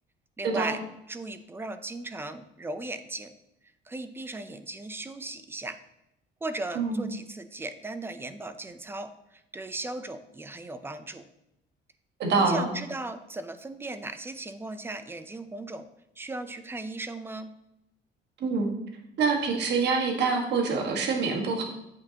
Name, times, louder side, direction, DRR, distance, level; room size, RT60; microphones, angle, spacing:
voice 1, 0.4-0.8 1.1-3.3 3.9-5.8 6.4-11.2 12.4-15.9 16.2-17.5, right 2 dB, 10° right, 11 dB, 0.5 m, -37 dB
voice 2, 6.7-7.1 12.2-12.7 18.4-18.7 19.2-21.6, right 4 dB, 55° right, 2 dB, 1.5 m, -25 dB
8.7 x 8.4 x 2.8 m, 0.85 s
cardioid pair, 140°, 20 cm